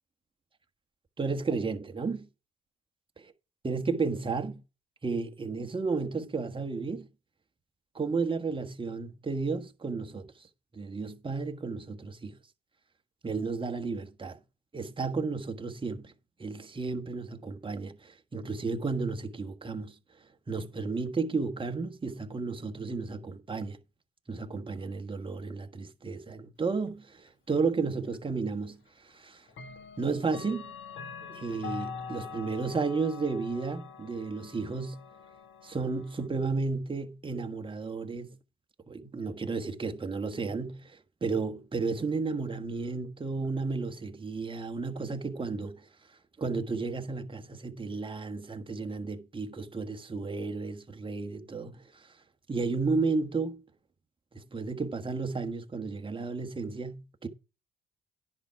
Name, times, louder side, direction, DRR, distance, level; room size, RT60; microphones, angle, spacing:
voice 1, 1.2-2.3 3.6-4.6 5.0-7.1 7.9-10.3 10.7-12.4 13.2-14.4 14.7-16.1 16.4-19.9 20.5-23.8 24.3-28.8 29.0-29.4 30.0-30.7 31.2-35.0 35.6-38.4 38.9-45.9 46.4-52.1 52.5-53.6 54.3-57.3, right 4 dB, 25° right, 1.4 m, -33 dB
Clock, 28.1-28.2 29.5-36.3, left 5 dB, 75° left, 1.5 m, -44 dB
10.5 x 5.8 x 4.7 m
cardioid pair, 90°, 20 cm